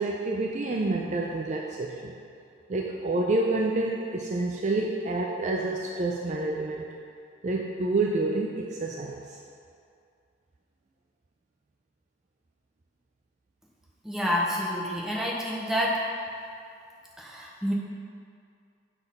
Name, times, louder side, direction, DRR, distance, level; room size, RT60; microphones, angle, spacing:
voice 1, 0.0-2.1 2.7-6.8 7.4-9.4, right 2 dB, 35° right, -1 dB, 0.4 m, -28 dB
voice 2, 14.0-16.0 17.2-17.7, equal, ahead, -4 dB, 0.7 m, -28 dB
6.9 x 4.1 x 5.5 m, 2.4 s
head